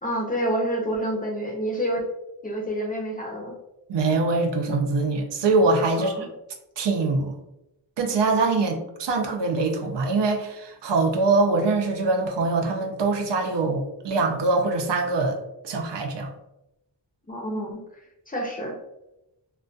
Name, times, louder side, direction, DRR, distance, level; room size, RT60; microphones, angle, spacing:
voice 1, 0.0-2.1 2.4-3.5 6.0-6.3 17.3-17.8 18.3-18.8, right 1 dB, 20° left, -1 dB, 0.5 m, -28 dB
voice 2, 3.9-6.3 6.8-7.4 8.0-15.4 15.6-16.3, right 3 dB, 80° right, 3 dB, 0.5 m, -23 dB
2.2 x 2.2 x 2.5 m, 0.90 s
wide cardioid pair, 115°, 42 cm